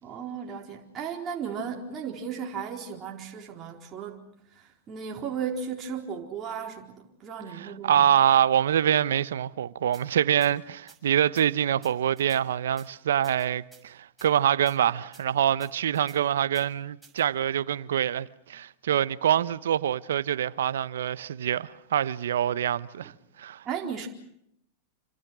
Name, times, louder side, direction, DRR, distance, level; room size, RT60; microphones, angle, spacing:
voice 1, 0.0-4.3 4.6-8.1 23.6-24.1, right 7 dB, 30° right, 4.2 m, -35 dB
voice 2, 7.5-23.1 23.4-23.6, right 10 dB, 75° right, 1.0 m, -25 dB
sound 1, 9.9-10.0 10.4-10.5 10.9-11.0 11.3-11.5 11.8-12.4 12.8-12.9 13.2-13.8 14.2-14.3 14.7-14.8 15.1-15.2 15.6-16.2 16.5-16.7 17.0-17.2, right 4 dB, 10° right, 6.4 m, -53 dB
28.5 x 26.0 x 6.3 m
hypercardioid pair, 105°, 0 cm